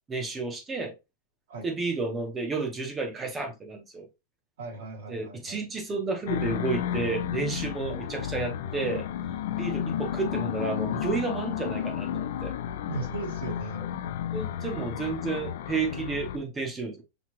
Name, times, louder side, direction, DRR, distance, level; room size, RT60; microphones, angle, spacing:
voice 1, 0.1-0.9 1.6-4.1 5.1-9.1 9.6-12.6 14.3-17.0, right 4 dB, 10° right, 0.8 m, -31 dB
voice 2, 4.6-5.6 12.9-13.9, right 3 dB, 80° right, 2.7 m, -37 dB
sound 1, 6.3-16.4, left 9 dB, 65° left, 0.4 m, -32 dB
6.0 x 2.3 x 3.0 m
supercardioid pair, 175°, 0 cm